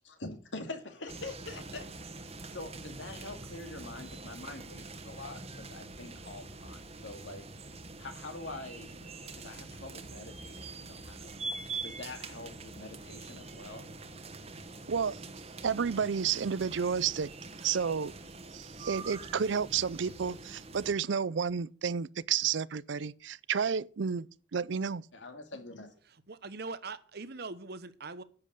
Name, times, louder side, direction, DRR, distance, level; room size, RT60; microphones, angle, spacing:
voice 1, 0.2-2.2 2.5-7.5 8.0-11.4 11.8-13.9 25.1-25.9, left 2 dB, 85° left, 2.3 m, -45 dB
sound 1, 1.1-20.9, right 3 dB, 35° right, 1.3 m, -44 dB
voice 2, 14.9-15.2 15.6-17.3 17.6-18.1 18.5-24.3 24.5-25.0, right 6 dB, 75° right, 0.5 m, -31 dB
voice 3, 26.1-28.2, right 3 dB, 60° right, 1.0 m, -42 dB
10.5 x 7.6 x 6.6 m
head